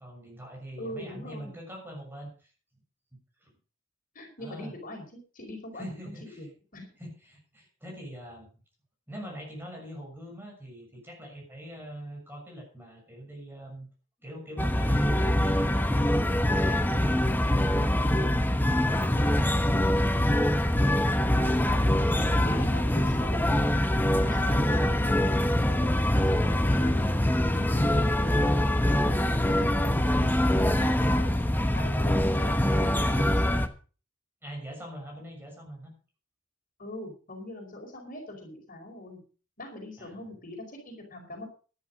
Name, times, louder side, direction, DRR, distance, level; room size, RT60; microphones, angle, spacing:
voice 1, 0.0-2.5 3.4-3.5 4.4-4.7 5.7-6.4 7.0-8.5 9.1-13.9 14.2-17.2 17.5-21.0 21.5-23.1 24.1-25.2 34.4-35.9 40.0-40.3, equal, 10° right, 0 dB, 6.9 m, -43 dB
voice 2, 0.8-1.6 4.1-5.9 6.2-6.5 6.7-6.9 22.4-23.4 24.2-27.2 27.5-28.8 29.5-31.3 31.6-33.6 36.8-39.2 39.6-41.5, left 1 dB, 45° left, 2 dB, 4.8 m, -42 dB
sound 1, 14.6-33.7, left 1 dB, 10° left, 1.0 m, -24 dB
13.0 x 11.0 x 5.1 m, 0.37 s
head